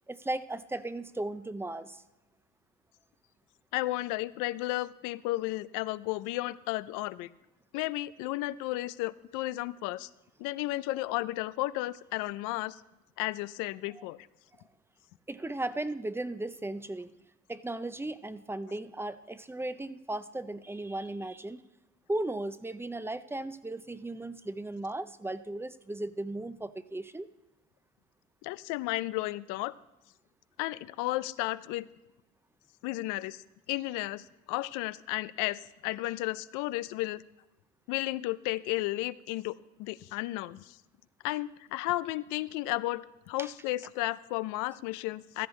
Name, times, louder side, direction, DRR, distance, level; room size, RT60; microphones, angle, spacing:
voice 1, 0.1-2.0 14.0-14.1 15.3-17.1 17.5-21.6 22.1-27.3 43.4-43.5, right 2 dB, 10° right, 13 dB, 0.5 m, -36 dB
voice 2, 3.7-7.3 7.7-10.1 10.4-12.8 13.2-14.2 28.4-29.7 30.6-31.9 32.8-37.2 37.9-40.8 41.2-45.5, left 18 dB, 90° left, 17 dB, 0.5 m, -33 dB
15.0 x 13.5 x 3.2 m, 0.95 s
cardioid pair, 100°, 31 cm